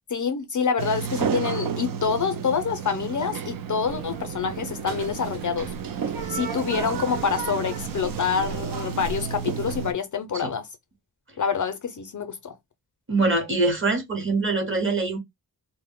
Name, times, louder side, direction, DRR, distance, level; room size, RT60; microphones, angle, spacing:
voice 1, 0.1-5.7 6.3-10.7 11.4-12.5, left 6 dB, 50° left, 0.5 m, -27 dB
Sliding door, 0.8-9.9, right 7 dB, 60° right, 0.5 m, -32 dB
sound 1, 3.8-9.9, right 5 dB, 90° right, 0.8 m, -37 dB
voice 2, 13.1-15.2, right 3 dB, 30° right, 0.9 m, -23 dB
2.1 x 2.0 x 3.5 m
wide cardioid pair, 100°, 38 cm